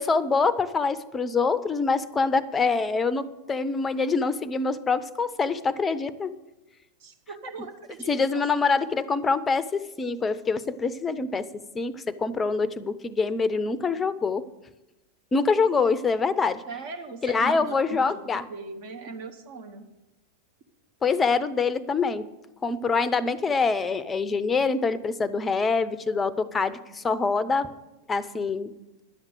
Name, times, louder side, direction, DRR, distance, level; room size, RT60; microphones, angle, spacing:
voice 1, 0.0-6.3 8.1-14.5 15.3-16.6 17.2-18.4 21.0-22.3 22.6-27.7 28.1-28.7, left 4 dB, 15° left, 16 dB, 0.6 m, -25 dB
voice 2, 7.0-7.7 8.0-8.4 16.7-19.9, right 4 dB, 50° right, 5 dB, 1.2 m, -39 dB
11.0 x 7.3 x 7.8 m, 1.0 s
figure-of-eight pair, 90°, 0 cm